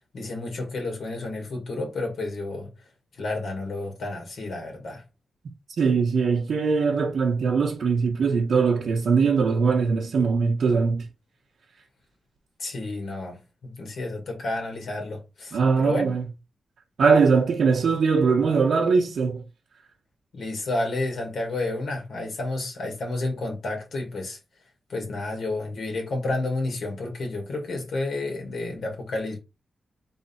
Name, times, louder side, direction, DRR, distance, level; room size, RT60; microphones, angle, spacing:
voice 1, 0.1-2.7 3.2-5.0 12.6-16.1 20.3-24.4 24.9-29.4, left 2 dB, 75° left, 1.8 m, -31 dB
voice 2, 5.8-11.1 15.5-16.2 17.0-19.4, right 5 dB, 75° right, 1.0 m, -21 dB
3.6 x 3.4 x 4.2 m
wide cardioid pair, 105°, 0 cm